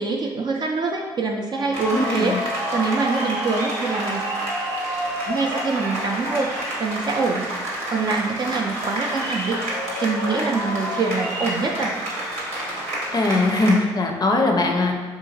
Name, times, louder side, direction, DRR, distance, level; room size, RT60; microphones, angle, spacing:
voice 1, 0.0-2.4 2.7-4.2 5.3-9.6 10.0-12.0, right 4 dB, 40° right, 1 dB, 0.4 m, -25 dB
sound 1, 1.7-13.7, right 1 dB, 80° right, 0.9 m, -28 dB
voice 2, 1.9-2.4 13.1-15.0, left 2 dB, 35° left, 2 dB, 0.5 m, -20 dB
3.6 x 2.7 x 2.7 m, 1.3 s
hypercardioid pair, 50°, 11 cm